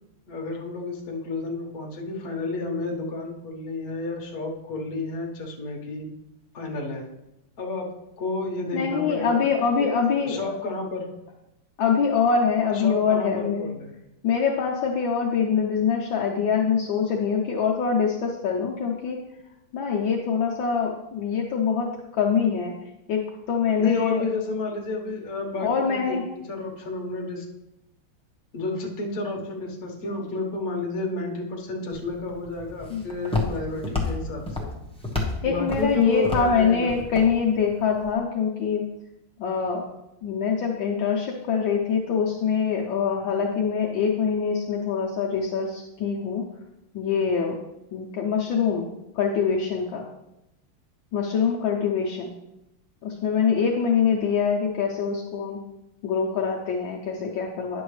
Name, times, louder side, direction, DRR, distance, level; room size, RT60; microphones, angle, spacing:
voice 1, 0.3-6.1 6.5-7.1 7.6-9.9 10.2-11.2 12.7-13.9 23.8-27.5 28.5-34.7 35.4-37.0, left 3 dB, 45° left, 0 dB, 1.6 m, -31 dB
voice 2, 8.7-10.4 11.8-13.7 14.2-19.2 19.7-22.8 23.1-24.2 25.6-26.2 32.9-33.0 35.4-38.9 39.4-39.9 40.2-46.4 46.9-47.6 47.9-48.9 49.1-50.1 51.1-52.3 53.0-55.6 56.0-57.8, left 6 dB, 70° left, -2 dB, 1.5 m, -24 dB
Walk footsteps, 31.9-38.1, left 3 dB, 5° left, 0.9 m, -32 dB
10.0 x 7.0 x 3.2 m, 0.88 s
omnidirectional pair, 2.3 m